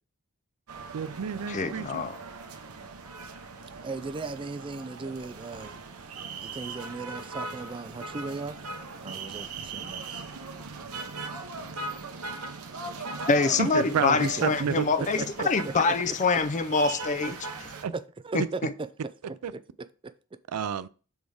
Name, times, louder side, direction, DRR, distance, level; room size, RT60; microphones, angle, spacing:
sound 1, 0.7-17.8, right 3 dB, 75° right, 1.0 m, -39 dB
voice 1, 0.9-2.1 13.6-14.8 17.8-17.9 19.4-19.5 20.5-20.9, right 7 dB, 90° right, 0.4 m, -29 dB
voice 2, 1.5-2.2 13.3-17.4 18.3-18.7, left 4 dB, 35° left, 0.5 m, -25 dB
voice 3, 3.8-5.8 6.4-8.6 9.0-10.2 14.2-14.5 14.8-14.9 15.2-15.7 16.1-16.2 17.9-20.4, right 3 dB, 25° right, 0.4 m, -38 dB
6.4 x 3.5 x 4.8 m
head